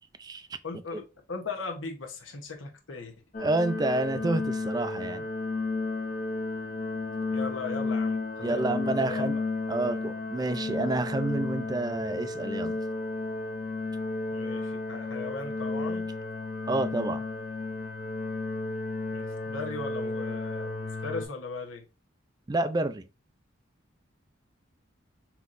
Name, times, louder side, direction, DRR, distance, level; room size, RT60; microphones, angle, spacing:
voice 1, 0.6-1.0 1.3-3.1 7.3-8.7 9.0-9.4 14.3-16.1 19.1-21.8, left 4 dB, 80° left, 1.0 m, -38 dB
sound 1, 3.3-21.3, left 3 dB, 45° left, 0.7 m, -33 dB
voice 2, 3.4-5.3 8.4-9.4 9.7-12.8 16.7-17.2 22.5-23.1, right 2 dB, 20° right, 0.4 m, -29 dB
5.6 x 2.9 x 2.6 m
head